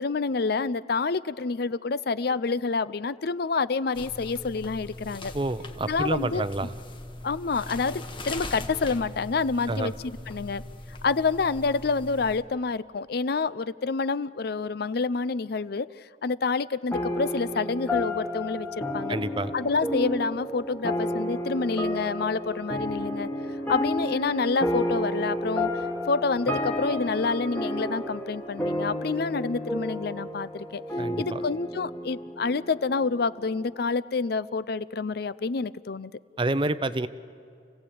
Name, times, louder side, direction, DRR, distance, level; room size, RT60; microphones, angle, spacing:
voice 1, 0.0-5.3 5.8-6.4 7.2-10.6 11.0-15.9 16.2-19.2 19.5-23.3 23.7-25.7 26.1-30.8 31.2-36.1, left 4 dB, 60° left, 17 dB, 0.5 m, -28 dB
sound 1, 3.9-12.4, left 2 dB, 30° left, 1.3 m, -40 dB
voice 2, 5.3-6.7 9.7-9.9 19.1-19.5 31.0-31.4 36.4-37.1, right 2 dB, 30° right, 13 dB, 0.7 m, -28 dB
sound 2, 16.9-33.7, left 1 dB, 10° left, 1.4 m, -31 dB
29.0 x 16.5 x 8.6 m, 2.5 s
head